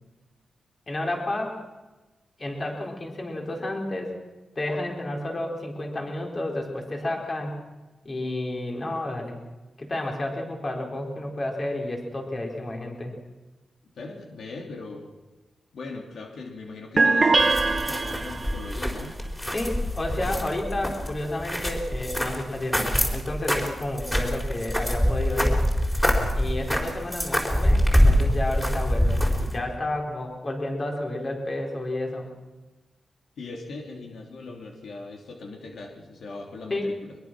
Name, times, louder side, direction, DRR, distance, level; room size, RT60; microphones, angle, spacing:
voice 1, 0.9-1.6 2.4-4.1 4.6-7.7 8.0-9.4 9.8-13.1 19.5-25.6 26.3-32.3 36.7-36.9, left 1 dB, 35° left, 1 dB, 4.4 m, -31 dB
voice 2, 13.9-15.1 15.7-19.2 33.4-37.2, left 3 dB, 80° left, 1 dB, 3.1 m, -40 dB
sound 1, 17.0-18.7, right 3 dB, 40° right, 1.5 m, -22 dB
sound 2, 17.4-29.6, equal, 10° left, 4.4 m, -25 dB
23.0 x 22.0 x 6.2 m, 1.1 s
wide cardioid pair, 110°, 0 cm